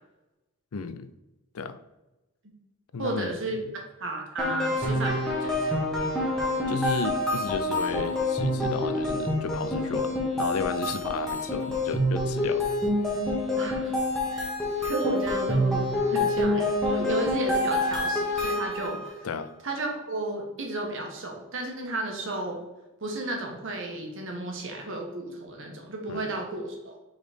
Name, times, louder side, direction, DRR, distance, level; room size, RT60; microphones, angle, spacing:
voice 1, 0.7-1.1 1.5-1.8 2.9-3.4 6.7-12.7 19.2-19.6 26.1-26.3, left 4 dB, 75° left, 12 dB, 0.5 m, -33 dB
voice 2, 3.0-5.7 13.6-14.0 14.3-14.5 14.8-19.3 19.6-22.6 23.0-27.0, right 2 dB, 60° right, 1 dB, 1.4 m, -33 dB
sound 1, 4.4-19.1, left 1 dB, ahead, 1.3 m, -27 dB
5.1 x 4.1 x 5.0 m, 1.0 s
head